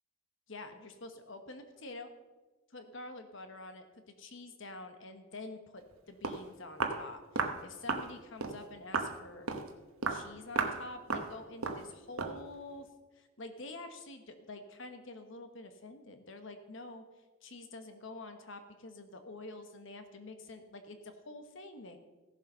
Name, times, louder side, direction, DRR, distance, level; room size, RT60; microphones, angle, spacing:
voice 1, 0.5-2.1 2.7-9.5 10.1-12.9 13.1-17.0 17.4-22.0, left 2 dB, 55° left, 8 dB, 1.2 m, -47 dB
Walk footsteps, 5.9-6.0 6.2-6.4 6.8-7.0 7.4-7.6 7.9-8.1 8.4-8.6 8.9-9.1 9.5-9.7 10.0-10.2 10.6-10.8 11.1-11.3 11.6-11.8 12.2-12.4, right 4 dB, 75° right, 1.0 m, -33 dB
15.0 x 7.3 x 5.5 m, 1.2 s
head